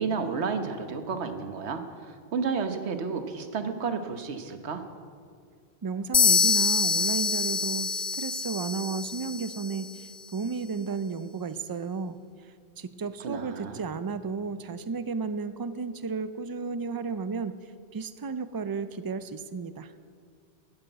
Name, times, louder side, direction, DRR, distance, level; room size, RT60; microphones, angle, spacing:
voice 1, 0.0-4.8 13.2-13.9, right 5 dB, 85° right, 8 dB, 1.3 m, -31 dB
voice 2, 5.8-12.2 12.8-17.5 17.9-19.9, right 5 dB, 40° right, 13 dB, 0.3 m, -33 dB
sound 1, 6.1-9.9, left 5 dB, 40° left, 0.4 m, -25 dB
12.0 x 10.0 x 7.9 m, 2.2 s
omnidirectional pair, 1.1 m